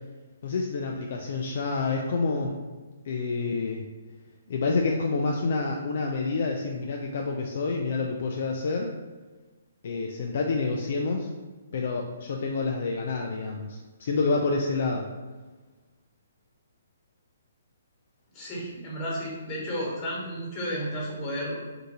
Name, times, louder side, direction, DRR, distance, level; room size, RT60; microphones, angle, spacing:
voice 1, 0.4-2.6 3.1-3.8 4.5-8.9 9.8-11.3 11.7-15.1, left 3 dB, 60° left, 1 dB, 0.4 m, -28 dB
voice 2, 18.3-21.6, equal, 25° left, -6 dB, 1.4 m, -32 dB
3.6 x 2.6 x 2.7 m, 1.3 s
hypercardioid pair, 145°, 0 cm